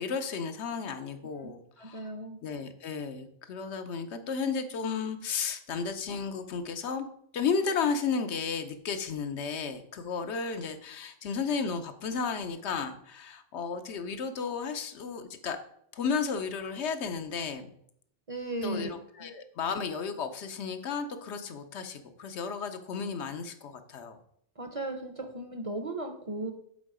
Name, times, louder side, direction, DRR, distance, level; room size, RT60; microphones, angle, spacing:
voice 1, 0.0-2.1 2.4-7.1 7.3-15.6 15.9-17.7 18.6-24.2, left 5 dB, 75° left, 8 dB, 1.0 m, -33 dB
voice 2, 1.8-2.4 18.3-18.9 19.2-19.3 24.6-26.5, right 2 dB, 35° right, 5 dB, 0.7 m, -36 dB
7.4 x 3.9 x 4.9 m, 0.68 s
omnidirectional pair, 1.2 m